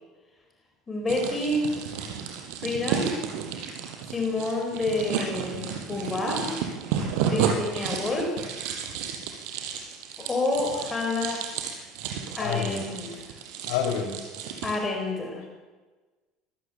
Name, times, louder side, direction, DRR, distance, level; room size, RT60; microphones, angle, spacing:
voice 1, 0.9-1.7 2.6-3.2 4.1-6.5 7.2-8.3 10.2-11.4 12.4-13.1 14.6-15.4, left 2 dB, 15° left, 2 dB, 4.8 m, -28 dB
sound 1, 1.1-14.8, right 7 dB, 75° right, 6.1 m, -32 dB
voice 2, 12.4-12.8 13.7-14.1, left 7 dB, 80° left, 3 dB, 7.3 m, -28 dB
25.5 x 19.5 x 8.1 m, 1.3 s
cardioid pair, 155°, 0 cm